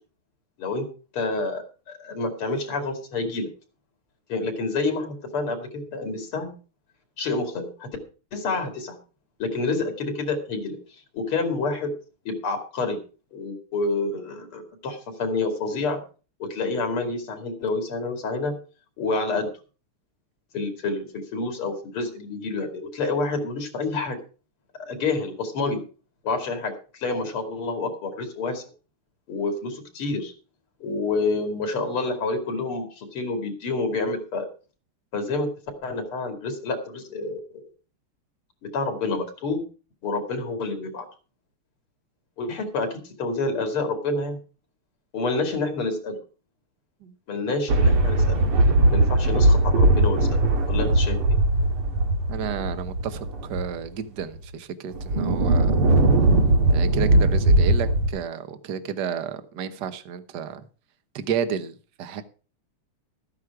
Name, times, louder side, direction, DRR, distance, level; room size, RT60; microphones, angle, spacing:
voice 1, 1.1-3.5 4.3-6.5 7.2-7.9 8.3-9.0 9.4-10.8 11.1-11.9 12.3-13.0 13.3-16.0 16.4-18.5 19.0-19.5 20.5-24.2 24.8-25.8 26.2-28.6 29.3-30.3 30.8-34.5 35.1-35.5 35.8-37.6 38.6-39.6 40.0-41.1 42.4-44.4 45.1-46.2 47.3-48.4 48.9-50.4 50.7-51.4, left 3 dB, 80° left, 3.4 m, -28 dB
sound 1, 47.7-53.9 54.4-54.5 54.9-58.1, right 2 dB, 85° right, 2.6 m, -19 dB
voice 2, 52.3-55.7 56.7-60.6 61.1-62.2, right 8 dB, 55° right, 1.6 m, -31 dB
13.5 x 9.7 x 4.7 m
omnidirectional pair, 2.4 m